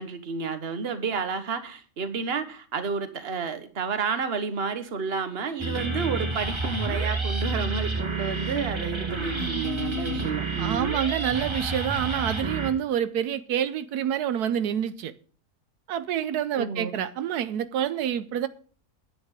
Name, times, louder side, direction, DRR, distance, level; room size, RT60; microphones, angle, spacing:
voice 1, 0.0-11.0 16.6-17.0, right 5 dB, 40° right, 1.4 m, -31 dB
sound 1, 5.6-12.7, right 3 dB, 20° right, 1.5 m, -29 dB
voice 2, 10.6-15.1 15.9-18.5, right 9 dB, 85° right, 1.3 m, -27 dB
9.8 x 9.5 x 4.9 m
omnidirectional pair, 1.6 m